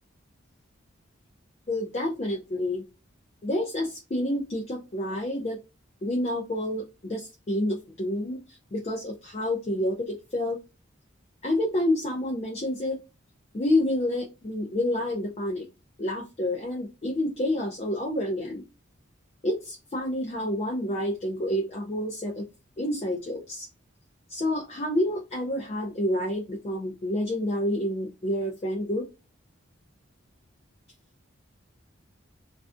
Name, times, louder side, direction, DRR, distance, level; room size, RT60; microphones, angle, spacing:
voice 1, 1.7-2.8 3.4-5.6 6.0-10.6 11.4-13.0 13.5-15.7 16.0-18.6 19.4-22.4 22.8-23.7 24.3-29.0, left 1 dB, 30° left, 0 dB, 0.4 m, -28 dB
2.4 x 2.3 x 2.4 m, 0.28 s
head